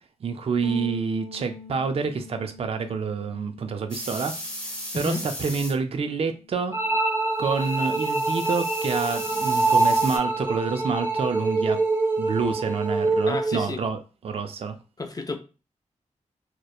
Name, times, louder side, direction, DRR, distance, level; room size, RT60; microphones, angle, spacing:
voice 1, 0.2-4.3 4.7-6.8 7.4-11.8 12.2-14.8, right 5 dB, 50° right, 0.4 m, -28 dB
Bass guitar, 0.6-6.9, left 6 dB, 70° left, 0.8 m, -45 dB
sound 1, 3.9-5.7 7.5-10.2, left 1 dB, 10° left, 1.0 m, -36 dB
sound 2, 6.7-13.7, right 2 dB, 20° right, 0.8 m, -25 dB
voice 2, 13.3-13.8 15.0-15.4, left 3 dB, 30° left, 0.5 m, -31 dB
2.9 x 2.1 x 2.3 m
cardioid pair, 60°, 13 cm